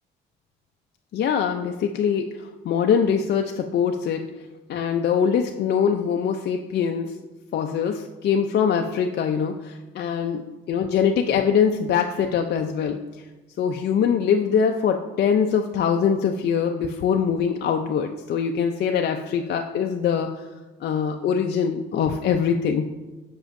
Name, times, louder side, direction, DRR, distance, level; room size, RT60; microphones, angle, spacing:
voice 1, 1.1-2.3 2.6-4.2 4.7-7.1 7.5-13.1 13.6-20.3 20.8-22.9, left 7 dB, 55° left, 4 dB, 0.4 m, -23 dB
7.6 x 6.1 x 2.5 m, 1.2 s
cardioid pair, 90°, 20 cm